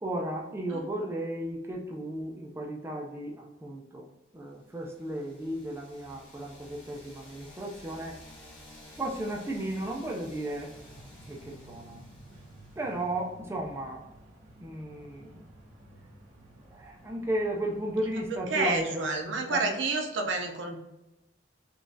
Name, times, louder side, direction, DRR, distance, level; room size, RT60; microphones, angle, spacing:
voice 1, 0.0-8.2 9.0-10.7 11.2-12.1 12.8-14.0 14.6-15.5 16.7-19.6, right 1 dB, 15° right, -1 dB, 0.4 m, -35 dB
sound 1, 4.6-13.3, left 1 dB, 85° left, 1.5 m, -52 dB
sound 2, 10.7-18.8, right 1 dB, 45° right, 0.9 m, -53 dB
voice 2, 18.5-20.8, right 3 dB, 70° right, 3 dB, 0.5 m, -29 dB
3.7 x 2.3 x 2.6 m, 0.96 s
head